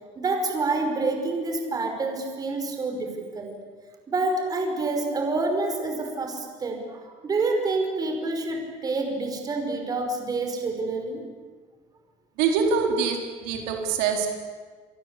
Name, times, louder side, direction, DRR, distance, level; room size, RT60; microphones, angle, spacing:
voice 1, 0.2-3.6 4.1-11.2, right 3 dB, 25° right, 4 dB, 5.5 m, -27 dB
voice 2, 12.4-14.3, right 5 dB, 85° right, 2 dB, 4.1 m, -24 dB
28.5 x 23.0 x 8.5 m, 1.5 s
cardioid pair, 135°, 14 cm